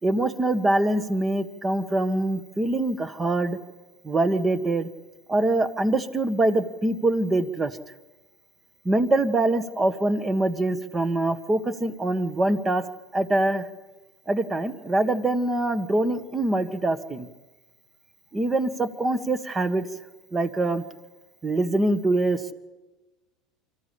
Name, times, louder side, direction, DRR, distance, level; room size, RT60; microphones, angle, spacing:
voice 1, 0.0-3.6 4.0-4.9 5.3-7.8 8.8-12.8 13.1-13.7 14.3-17.3 18.3-19.8 20.3-20.8 21.4-22.5, right 2 dB, 20° right, 12 dB, 1.5 m, -24 dB
25.0 x 15.0 x 8.5 m, 1.2 s
hypercardioid pair, 95°, 0 cm